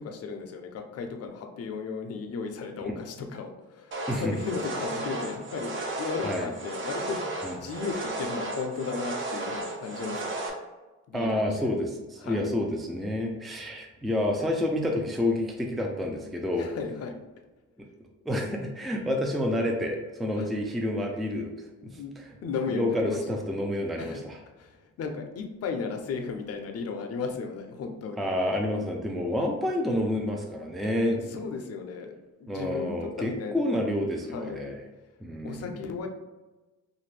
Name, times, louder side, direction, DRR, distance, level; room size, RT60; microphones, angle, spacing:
voice 1, 0.0-7.3 7.5-10.6 11.1-11.8 12.2-12.5 16.6-17.1 20.4-20.5 21.8-22.1 22.4-23.2 24.0-24.2 24.6-28.3 31.1-33.6 34.3-34.6 35.4-36.1, left 5 dB, 55° left, 4 dB, 0.6 m, -35 dB
sound 1, 3.9-10.5, right 2 dB, 40° right, 0.7 m, -34 dB
voice 2, 11.1-16.7 18.3-21.5 21.9-22.3 22.7-24.4 28.2-31.2 32.5-34.8 35.2-35.8, left 1 dB, ahead, 1 dB, 0.4 m, -29 dB
2.6 x 2.5 x 3.2 m, 1.1 s
cardioid pair, 90°, 30 cm